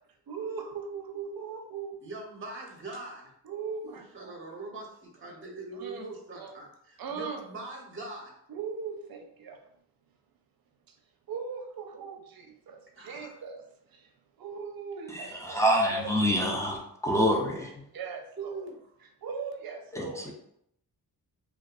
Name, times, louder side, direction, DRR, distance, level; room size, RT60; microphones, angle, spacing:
voice 1, 0.3-2.0 3.4-4.4 5.2-5.4 5.7-6.1 6.3-6.5 7.0-7.4 8.5-9.6 10.9-11.0 11.3-14.1 14.4-16.6 17.9-18.7 19.2-20.3, right 5 dB, 65° right, 4 dB, 0.5 m, -39 dB
voice 2, 2.0-3.3 3.8-8.3 13.0-13.3 18.4-18.8, right 3 dB, 30° right, 0 dB, 0.7 m, -42 dB
voice 3, 15.1-17.7 19.9-20.3, equal, 10° left, -1 dB, 0.5 m, -27 dB
2.5 x 2.3 x 2.3 m, 0.73 s
cardioid pair, 50°, 39 cm